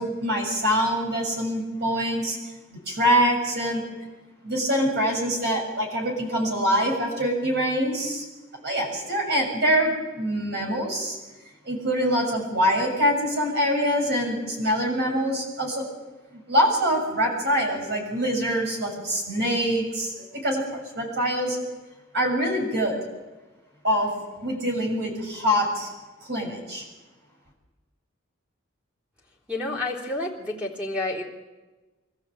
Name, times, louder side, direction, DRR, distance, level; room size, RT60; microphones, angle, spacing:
voice 1, 0.0-2.4 2.7-3.8 4.4-8.2 8.6-11.2 11.7-15.9 16.3-21.6 22.1-23.0 23.8-24.1 24.4-25.9 26.2-26.8, equal, 55° right, 0 dB, 7.2 m, -24 dB
voice 2, 29.5-31.2, left 2 dB, 5° right, -2 dB, 3.7 m, -29 dB
25.0 x 14.5 x 7.9 m, 1.2 s
head